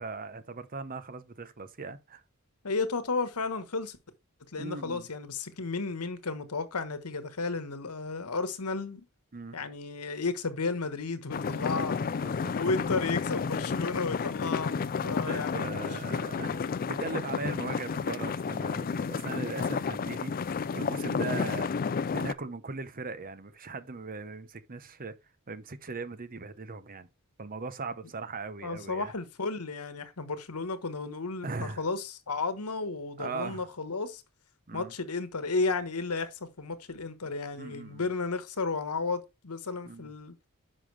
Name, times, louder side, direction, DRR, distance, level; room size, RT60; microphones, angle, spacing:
voice 1, 0.0-2.2 4.6-5.1 9.3-9.6 12.2-12.5 15.0-21.8 22.1-25.1 25.5-27.1 27.4-29.1 31.4-31.8 33.2-33.7 34.7-34.9 37.2-38.1 39.8-40.1, right 4 dB, 40° right, 0.8 m, -39 dB
voice 2, 2.6-4.0 4.5-9.0 9.5-11.9 12.6-15.9 28.6-34.2 34.7-40.3, left 3 dB, 90° left, 1.3 m, -33 dB
sound 1, 11.3-22.3, left 5 dB, 40° left, 0.4 m, -31 dB
10.0 x 5.8 x 3.3 m
head